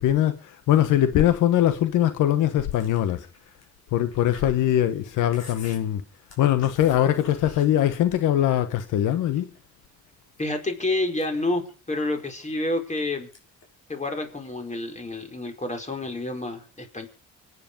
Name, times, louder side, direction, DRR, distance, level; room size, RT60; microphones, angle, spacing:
voice 1, 0.0-3.3 3.9-6.0 6.4-9.5, left 12 dB, 85° left, 1.3 m, -22 dB
Chewing mastication, 2.7-8.1 8.5-9.6 10.1-10.6 11.0-13.0 13.3-13.6 13.9-14.7, left 4 dB, 55° left, 6.1 m, -49 dB
voice 2, 10.4-13.3 13.9-17.1, left 2 dB, 25° left, 4.9 m, -29 dB
25.5 x 10.0 x 5.3 m
cardioid pair, 90°, 30 cm